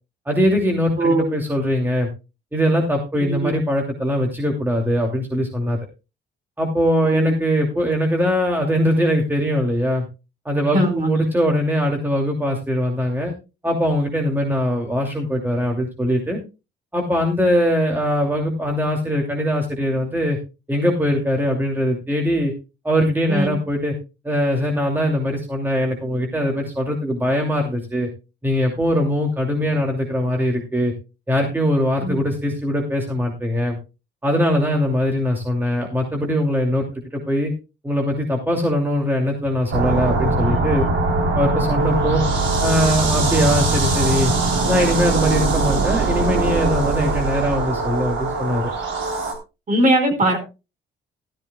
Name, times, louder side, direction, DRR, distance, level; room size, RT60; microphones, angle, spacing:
voice 1, 0.3-2.1 2.5-5.8 6.6-10.1 10.4-13.3 13.6-16.4 16.9-20.4 20.7-22.5 22.8-23.9 24.2-28.1 28.4-30.9 31.3-33.8 34.2-37.5 37.8-40.9 41.3-42.2 42.6-44.3 44.7-48.7, equal, 10° right, 1 dB, 2.7 m, -21 dB
voice 2, 1.0-1.3 3.2-3.5 7.0-7.3 10.7-11.1 23.3-23.6 32.0-32.2 45.8-45.9 49.7-50.4, right 1 dB, 40° right, 4 dB, 5.0 m, -20 dB
sound 1, 39.7-49.3, right 3 dB, 75° right, 3.6 m, -21 dB
14.0 x 13.5 x 2.3 m, 0.28 s
cardioid pair, 90°, 20 cm